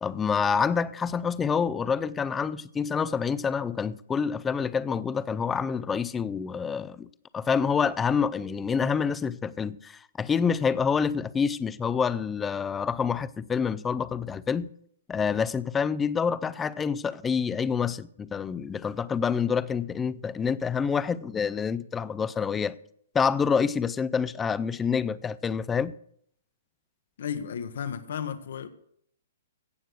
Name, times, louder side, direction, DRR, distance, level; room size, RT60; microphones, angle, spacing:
voice 1, 0.0-7.1 7.3-14.7 15.1-22.8 23.1-26.0, left 6 dB, 10° left, 0.4 m, -27 dB
voice 2, 27.2-28.7, left 8 dB, 70° left, 1.2 m, -33 dB
16.5 x 6.7 x 6.3 m
hypercardioid pair, 155°, 0 cm